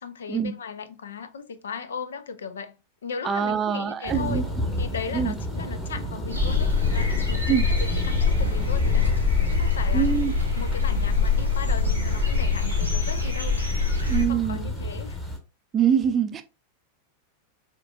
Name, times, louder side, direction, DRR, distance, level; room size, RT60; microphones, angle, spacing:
voice 1, 0.0-2.8 3.0-4.5 4.8-10.1 10.5-13.6 14.1-15.2, left 6 dB, 65° left, 0.5 m, -37 dB
voice 2, 3.2-4.4 5.1-5.3 7.5-7.7 9.9-10.3 14.1-14.6 15.7-16.4, right 8 dB, 25° right, 0.5 m, -24 dB
Thunder, 4.1-15.4, equal, 10° left, 1.2 m, -31 dB
sound 1, 6.3-14.2, left 5 dB, 90° left, 1.3 m, -24 dB
6.6 x 2.5 x 2.3 m
figure-of-eight pair, 90°, 0 cm